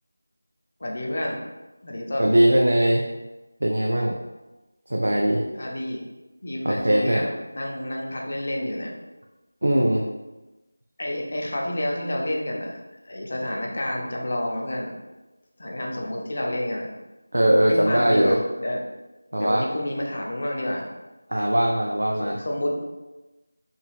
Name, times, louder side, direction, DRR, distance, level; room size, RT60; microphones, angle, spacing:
voice 1, 0.8-1.4 1.8-2.3 5.5-6.0 6.4-8.9 11.0-12.8 13.0-14.9 15.6-16.9 17.7-18.8 19.3-20.9 22.2-22.7, left 1 dB, 45° left, -1 dB, 0.5 m, -29 dB
voice 2, 2.2-3.1 3.6-4.1 4.9-5.4 6.6-7.2 9.6-10.0 17.3-18.4 19.3-19.7 21.3-22.4, right 1 dB, 80° right, 0 dB, 0.4 m, -20 dB
3.8 x 2.2 x 2.3 m, 1.1 s
figure-of-eight pair, 175°, 0 cm